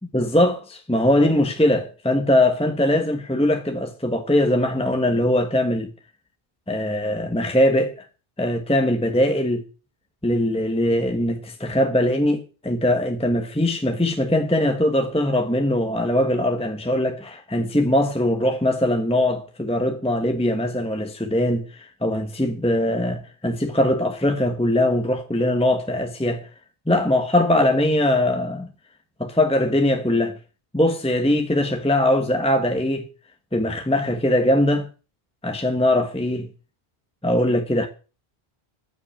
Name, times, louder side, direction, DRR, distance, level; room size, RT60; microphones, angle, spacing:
voice 1, 0.1-5.9 6.7-8.0 8.4-9.6 10.2-26.5 26.9-28.7 29.2-30.4 30.7-33.1 33.5-34.9 35.4-36.5 37.2-37.9, left 1 dB, 5° left, 1.2 m, -21 dB
14.5 x 5.5 x 8.5 m
omnidirectional pair, 1.1 m